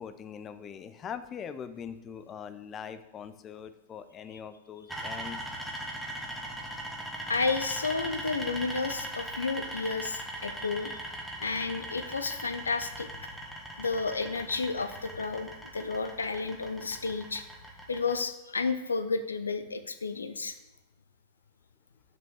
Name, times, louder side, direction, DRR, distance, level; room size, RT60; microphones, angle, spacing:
voice 1, 0.0-5.4, left 7 dB, 25° left, 12 dB, 0.5 m, -42 dB
sound 1, 4.9-18.1, right 1 dB, ahead, 1.5 m, -40 dB
voice 2, 7.3-10.9 11.4-13.3 13.8-17.4 17.9-20.5, left 4 dB, 75° left, 10 dB, 0.5 m, -32 dB
6.2 x 5.2 x 6.7 m, 0.93 s
figure-of-eight pair, 90°, 0 cm